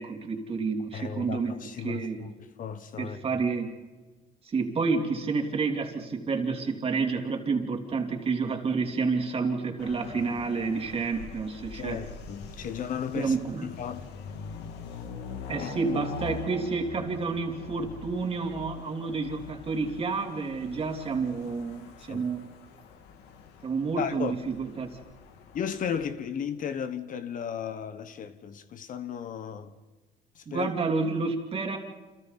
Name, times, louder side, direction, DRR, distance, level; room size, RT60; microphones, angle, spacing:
voice 1, 0.0-1.5 1.8-2.2 3.0-3.7 4.4-12.0 13.1-13.7 15.5-22.5 23.6-24.9 30.5-31.8, right 4 dB, 35° right, 3.0 m, -29 dB
voice 2, 0.9-3.2 11.7-14.1 15.6-15.7 22.1-22.3 24.0-24.4 25.5-29.7 30.3-30.7, left 7 dB, 50° left, 1.2 m, -35 dB
sound 1, 9.8-26.1, left 5 dB, 90° left, 2.1 m, -43 dB
29.5 x 27.0 x 4.2 m
cardioid pair, 110°, 17 cm